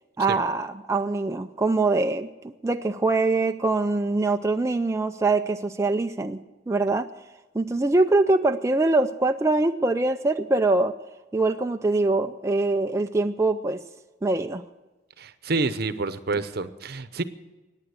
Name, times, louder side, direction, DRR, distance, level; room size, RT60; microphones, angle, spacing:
voice 1, 0.2-6.4 6.7-7.1 7.5-10.9 11.3-13.8 14.2-14.6, right 2 dB, 15° right, 6 dB, 0.4 m, -23 dB
voice 2, 15.2-17.2, right 3 dB, 60° right, 12 dB, 0.8 m, -28 dB
15.0 x 9.9 x 8.1 m, 1.2 s
head